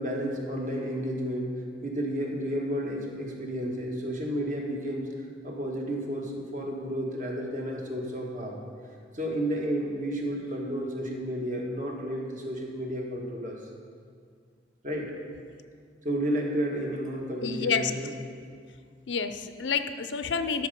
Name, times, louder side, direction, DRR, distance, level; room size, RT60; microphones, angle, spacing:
voice 1, 0.0-5.1 5.4-8.6 9.1-13.6 14.8-15.1 16.0-18.1, equal, 45° right, 0 dB, 1.5 m, -32 dB
voice 2, 17.4-17.9 19.1-20.7, left 6 dB, 85° left, 10 dB, 0.5 m, -29 dB
12.5 x 6.6 x 5.4 m, 2.1 s
head